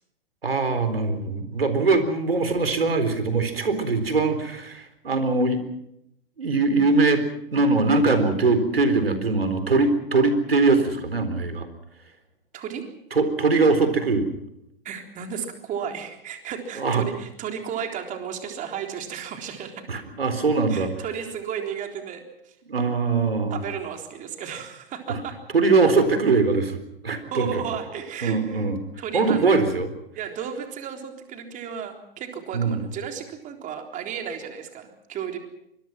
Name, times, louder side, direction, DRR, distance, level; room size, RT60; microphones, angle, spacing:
voice 1, 0.4-5.6 6.4-7.3 7.5-11.7 13.1-14.3 16.8-17.0 19.9-20.9 22.7-23.6 25.1-25.2 25.5-27.6 28.2-28.8 29.1-29.9 32.5-32.8, right 3 dB, 85° right, 10 dB, 4.1 m, -22 dB
voice 2, 12.5-12.8 14.8-20.0 20.7-22.6 23.5-25.4 27.3-28.7 29.0-29.5 30.2-35.4, right 8 dB, 25° right, 4 dB, 3.8 m, -34 dB
25.5 x 21.5 x 6.1 m, 0.78 s
figure-of-eight pair, 115°, 29 cm